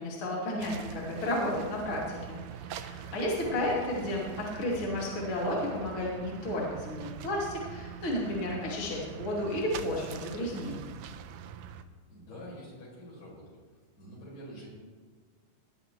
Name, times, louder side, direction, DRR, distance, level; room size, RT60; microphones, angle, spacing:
voice 1, 0.0-10.9, left 1 dB, 40° left, -5 dB, 3.0 m, -32 dB
sound 1, 0.6-11.8, right 8 dB, 90° right, 2.3 m, -44 dB
voice 2, 12.1-13.5 14.0-14.7, equal, 70° left, -6 dB, 6.4 m, -46 dB
19.0 x 10.5 x 3.0 m, 1.5 s
omnidirectional pair, 3.9 m